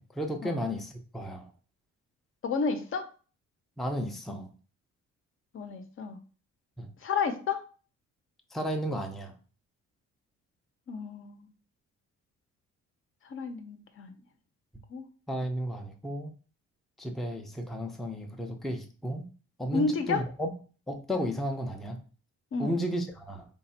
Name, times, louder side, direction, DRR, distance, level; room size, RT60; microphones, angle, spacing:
voice 1, 0.0-1.5 3.8-4.5 6.8-6.9 8.5-9.3 15.3-16.3 17.0-19.3 19.6-20.5 20.9-22.0 22.6-23.5, equal, ahead, 3 dB, 0.5 m, -33 dB
voice 2, 2.4-3.1 5.5-6.2 7.0-7.6 10.9-11.5 13.2-14.2 14.9-15.0 19.7-20.2 22.5-22.8, left 4 dB, 45° left, 7 dB, 0.7 m, -31 dB
3.2 x 2.3 x 4.2 m, 0.38 s
cardioid pair, 90°, 30 cm